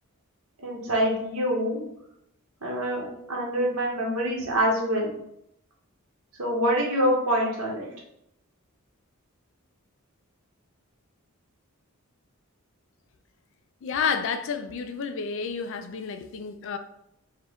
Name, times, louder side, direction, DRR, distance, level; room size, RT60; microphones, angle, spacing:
voice 1, 0.6-1.8 2.6-5.1 6.4-7.9, equal, 85° right, 1.3 m, -25 dB
voice 2, 13.8-16.8, left 6 dB, 60° left, 0.4 m, -30 dB
4.5 x 2.3 x 3.5 m
head